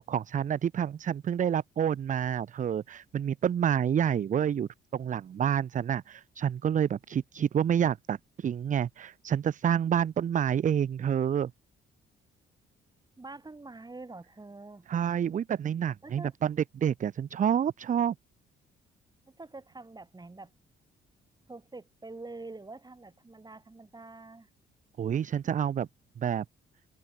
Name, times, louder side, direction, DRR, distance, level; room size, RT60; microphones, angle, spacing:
voice 1, 0.0-11.5 14.9-18.1 25.0-25.9 26.2-26.4, right 9 dB, 40° right, 0.5 m, -28 dB
voice 2, 13.2-14.9 16.0-16.3 19.4-20.5 21.5-24.5, right 3 dB, 20° right, 7.7 m, -45 dB
cardioid pair, 90°, 20 cm